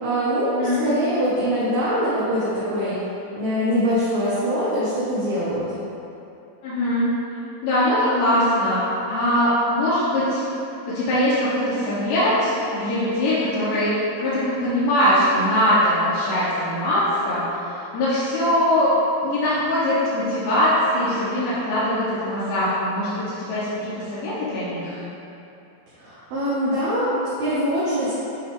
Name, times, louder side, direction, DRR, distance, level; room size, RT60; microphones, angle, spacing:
voice 1, 0.0-3.0 3.4-5.6 26.0-28.1, equal, 70° right, -10 dB, 2.4 m, -23 dB
voice 2, 0.5-0.8 6.6-7.1 7.6-10.4 10.9-18.9 19.2-25.0, left 1 dB, 70° left, -12 dB, 2.9 m, -22 dB
8.7 x 3.8 x 3.7 m, 2.9 s
omnidirectional pair, 5.7 m